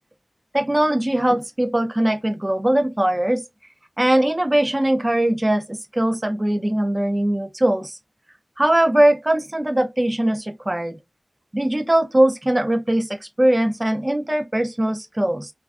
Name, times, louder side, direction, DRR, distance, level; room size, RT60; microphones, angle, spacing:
voice 1, 0.5-3.4 4.0-8.0 8.6-11.0 11.5-15.5, right 1 dB, 20° right, 0.3 m, -20 dB
2.4 x 2.3 x 2.2 m
wide cardioid pair, 75°, 0 cm